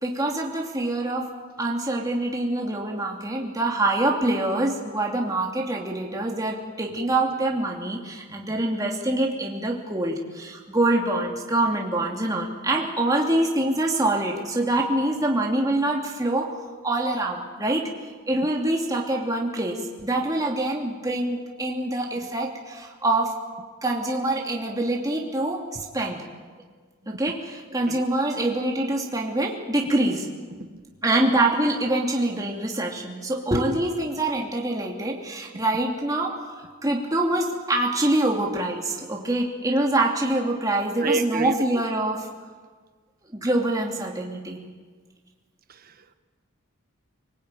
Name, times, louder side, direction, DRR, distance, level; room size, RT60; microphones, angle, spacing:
voice 1, 0.0-1.3 1.6-16.6 16.8-17.9 18.3-23.3 23.8-25.6 25.9-26.2 27.1-30.3 31.0-42.3 43.3-44.6, right 1 dB, 15° right, 0 dB, 2.7 m, -25 dB
voice 2, 30.5-30.9 35.5-35.6 41.0-41.6 45.7-46.1, right 3 dB, 40° right, 9 dB, 1.3 m, -30 dB
27.0 x 19.0 x 9.1 m, 1.5 s
head